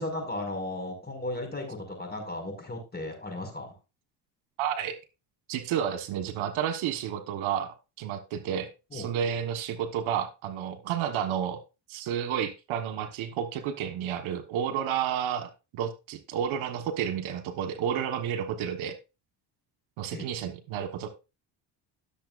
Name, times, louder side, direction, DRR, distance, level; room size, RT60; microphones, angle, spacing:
voice 1, 0.0-3.7 8.9-9.1 20.1-20.3, left 1 dB, 20° left, 3 dB, 5.2 m, -35 dB
voice 2, 4.6-5.0 5.5-11.6 11.9-19.0 20.0-21.1, right 9 dB, 75° right, 9 dB, 1.4 m, -31 dB
16.5 x 6.9 x 2.5 m, 0.28 s
supercardioid pair, 85°, 48 cm